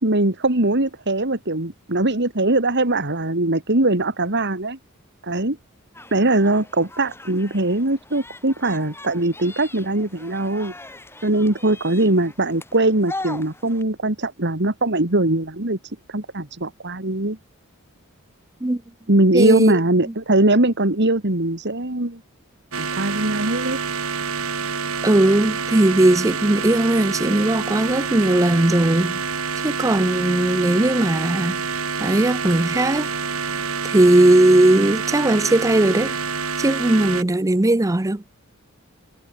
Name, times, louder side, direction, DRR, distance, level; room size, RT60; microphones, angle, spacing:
voice 1, 0.0-4.8 5.2-5.6 6.1-10.7 11.2-15.8 16.1-17.4 19.1-22.2 22.8-23.8, right 2 dB, 55° right, 2.8 m, -21 dB
sound 1, 5.9-13.8, left 2 dB, 10° left, 7.3 m, -40 dB
voice 2, 19.3-19.7 25.0-29.2 29.6-31.6 32.0-33.1 33.8-36.1 36.6-38.2, right 1 dB, 15° right, 0.6 m, -18 dB
sound 2, 22.7-37.2, right 5 dB, 75° right, 2.7 m, -27 dB
head